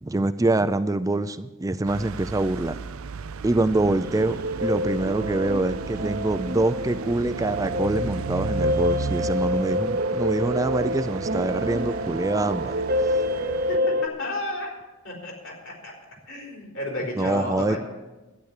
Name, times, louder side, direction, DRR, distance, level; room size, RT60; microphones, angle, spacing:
voice 1, 0.0-2.8 3.4-12.8 17.2-17.8, right 2 dB, 15° right, 13 dB, 0.4 m, -25 dB
sound 1, 1.9-13.8, right 5 dB, 80° right, 0.5 m, -35 dB
sound 2, 4.0-14.1, equal, 45° right, 0.8 m, -27 dB
voice 2, 13.7-14.7 15.0-15.9 16.3-17.8, left 1 dB, 65° left, -1 dB, 4.1 m, -32 dB
12.5 x 9.9 x 6.6 m, 1.1 s
head